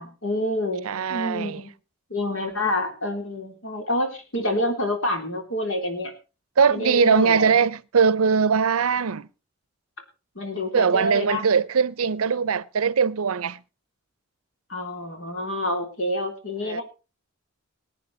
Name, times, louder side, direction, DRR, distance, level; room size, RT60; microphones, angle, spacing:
voice 1, 0.0-1.7 2.1-6.1 6.7-7.5 10.4-11.4 14.7-16.8, left 1 dB, 70° left, 3.6 m, -28 dB
voice 2, 0.8-1.6 6.6-9.3 10.7-13.6 16.6-16.8, right 6 dB, 85° right, 0.6 m, -21 dB
20.5 x 9.2 x 4.2 m
head